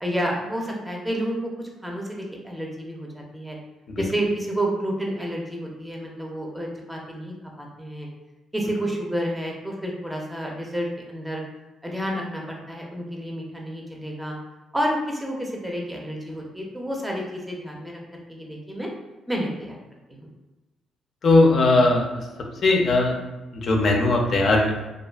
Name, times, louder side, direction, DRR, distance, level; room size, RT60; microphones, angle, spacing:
voice 1, 0.0-3.6 4.0-8.1 8.5-11.4 11.8-14.4 14.7-18.0 18.3-18.9 19.3-19.8 20.1-20.3, equal, 5° right, -1 dB, 0.6 m, -30 dB
voice 2, 21.2-22.1 22.6-23.1 23.5-24.9, left 2 dB, 55° left, 1 dB, 0.5 m, -18 dB
2.4 x 2.3 x 2.3 m, 1.1 s
cardioid pair, 90°, 0 cm